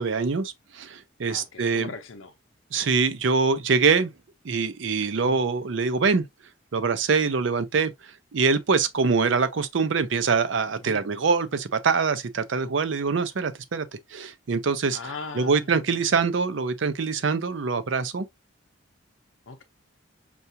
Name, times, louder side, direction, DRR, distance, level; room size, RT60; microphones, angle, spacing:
voice 1, 0.0-1.9 2.7-4.1 4.4-6.2 6.7-13.9 14.1-15.0 15.4-18.3, right 5 dB, 70° right, 0.5 m, -24 dB
voice 2, 1.3-2.3 5.2-5.4 10.8-11.0 14.9-15.8 19.5-19.6, left 4 dB, 85° left, 0.6 m, -39 dB
5.6 x 2.3 x 2.6 m
head